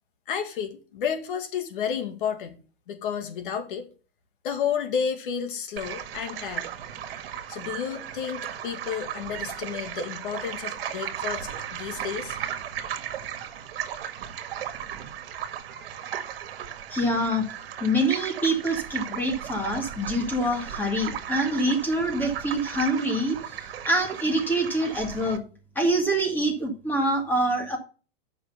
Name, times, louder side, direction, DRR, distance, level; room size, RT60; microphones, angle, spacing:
voice 1, 0.3-2.6 2.9-3.9 4.4-6.7 7.5-12.4, left 7 dB, 60° left, 2.2 m, -31 dB
sound 1, 5.8-25.4, right 10 dB, 70° right, 1.7 m, -36 dB
voice 2, 16.9-17.5 17.8-25.4 25.8-27.8, right 1 dB, 5° left, 2.0 m, -25 dB
10.0 x 6.2 x 5.5 m
supercardioid pair, 165°, 30 cm